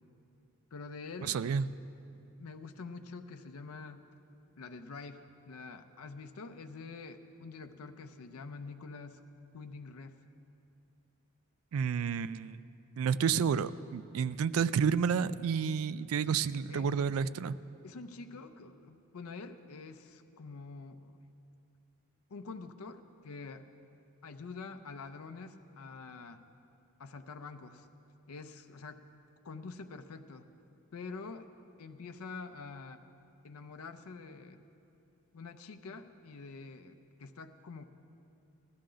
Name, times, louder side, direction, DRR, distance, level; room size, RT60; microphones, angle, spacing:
voice 1, 0.7-1.4 2.4-4.0 4.6-9.2 9.5-10.2 16.7-16.9 17.8-21.2 22.3-23.7 24.2-26.4 27.0-27.9 28.3-29.0 29.4-30.5 30.9-31.5 31.8-33.0 33.4-34.6 35.3-37.9, left 4 dB, 80° left, 7 dB, 0.5 m, -46 dB
voice 2, 1.3-1.7 11.7-12.6 13.0-17.6, right 6 dB, 70° right, 16 dB, 0.3 m, -30 dB
15.5 x 12.5 x 3.8 m, 2.6 s
head